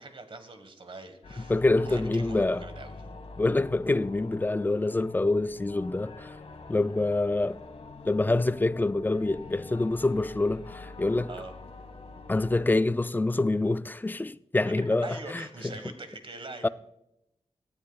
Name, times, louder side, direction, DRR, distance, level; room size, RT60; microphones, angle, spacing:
voice 1, 0.0-1.6 1.9-2.9 11.3-11.5 14.6-14.7 15.0-16.7, right 3 dB, 55° right, 1.5 m, -43 dB
sound 1, 1.2-12.6, left 3 dB, 75° left, 1.6 m, -45 dB
voice 2, 1.5-2.6 3.4-6.4 6.7-7.6 8.0-11.3 12.3-15.4 16.6-16.7, left 2 dB, 15° left, 0.3 m, -26 dB
18.5 x 13.0 x 2.4 m
wide cardioid pair, 105°, 11 cm